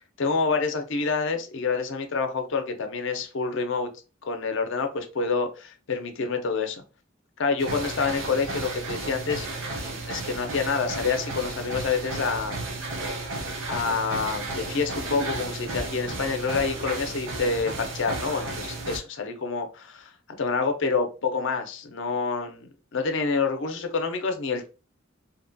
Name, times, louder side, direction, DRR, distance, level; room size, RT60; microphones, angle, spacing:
voice 1, 0.2-3.9 4.2-6.8 7.4-9.5 9.8-12.6 13.7-20.1 20.4-24.7, left 4 dB, 65° left, 0.5 m, -27 dB
sound 1, 7.6-19.0, right 2 dB, 70° right, 0.6 m, -33 dB
2.7 x 2.2 x 2.6 m
head